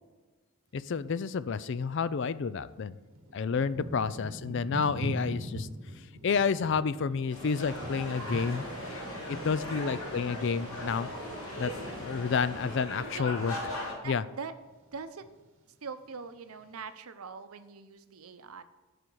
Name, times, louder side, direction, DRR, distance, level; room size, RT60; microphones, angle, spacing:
voice 1, 0.7-2.9 3.3-5.7 6.2-8.6 9.3-11.1 11.6-13.5 14.0-14.2, left 5 dB, 55° left, 16 dB, 0.4 m, -30 dB
Thunder / Rain, 2.0-2.1 2.8-12.3 12.6-13.5 14.0-14.4 14.6-15.5 16.1-16.2, equal, 60° right, 1.1 m, -42 dB
sound 1, 7.3-12.8, equal, 20° left, 2.9 m, -45 dB
sound 2, 7.6-13.9, left 1 dB, 70° left, 2.7 m, -39 dB
voice 2, 9.7-10.4 13.1-13.2 14.0-14.5 14.9-15.2 15.8-18.6, right 5 dB, 80° right, 10 dB, 0.7 m, -43 dB
12.0 x 5.0 x 4.6 m, 1.3 s
head